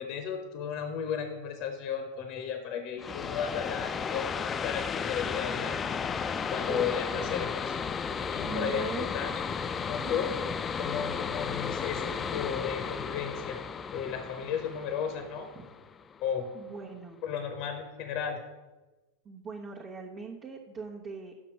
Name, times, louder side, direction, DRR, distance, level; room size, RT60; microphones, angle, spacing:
voice 1, 0.0-5.8 6.1-7.8 8.3-9.4 9.9-10.3 10.8-13.6 13.9-15.5 16.2-16.5 17.2-18.4, left 7 dB, 50° left, 7 dB, 0.9 m, -34 dB
sound 1, 3.0-16.4, left 6 dB, 25° left, 0.3 m, -34 dB
voice 2, 6.6-7.5 8.4-9.7 10.0-10.3 16.5-17.2 19.2-21.3, right 5 dB, 35° right, -2 dB, 1.0 m, -41 dB
6.1 x 5.9 x 6.0 m, 1.2 s
figure-of-eight pair, 90°, 0 cm